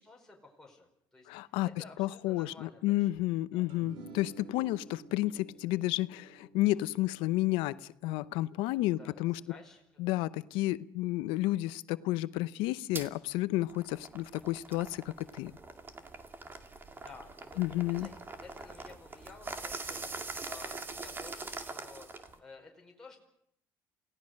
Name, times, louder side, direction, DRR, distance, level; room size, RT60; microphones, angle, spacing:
voice 1, 0.0-3.2 3.5-3.7 9.0-10.2 17.0-20.1 20.4-22.1 22.4-23.2, left 3 dB, 5° left, -1 dB, 4.8 m, -54 dB
voice 2, 1.3-9.4 10.0-15.5 17.6-18.1, left 17 dB, 85° left, 16 dB, 0.8 m, -31 dB
sound 1, 3.7-10.2, right 3 dB, 75° right, 3.1 m, -53 dB
sound 2, 12.9-13.1 13.6-22.4, right 3 dB, 25° right, 2.2 m, -43 dB
28.5 x 17.5 x 6.5 m, 0.74 s
cardioid pair, 115°, 9 cm